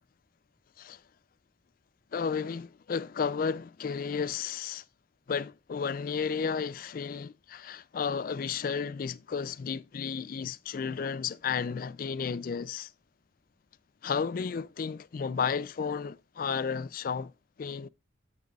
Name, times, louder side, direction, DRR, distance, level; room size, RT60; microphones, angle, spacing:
voice 1, 2.1-4.8 5.3-12.9 14.0-17.3 17.6-17.9, left 6 dB, 45° left, 0.3 m, -33 dB
14.0 x 5.3 x 2.3 m
head